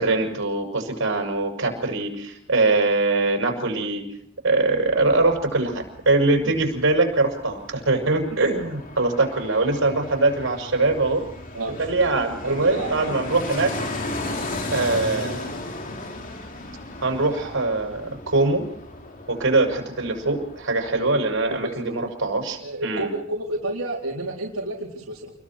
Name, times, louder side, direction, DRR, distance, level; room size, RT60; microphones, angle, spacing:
voice 1, 0.0-4.0 4.4-11.3 11.8-13.7 14.7-15.5 17.0-18.7 19.3-23.1, right 2 dB, 65° right, 3 dB, 6.6 m, -22 dB
Fixed-wing aircraft airplane, 4.7-21.6 21.9-22.0, left 2 dB, 40° left, 3.2 m, -36 dB
voice 2, 11.5-11.8 12.4-13.1 20.9-21.0 21.5-21.9 22.6-25.3, right 2 dB, 90° right, -3 dB, 4.3 m, -30 dB
30.0 x 22.5 x 4.6 m, 0.65 s
head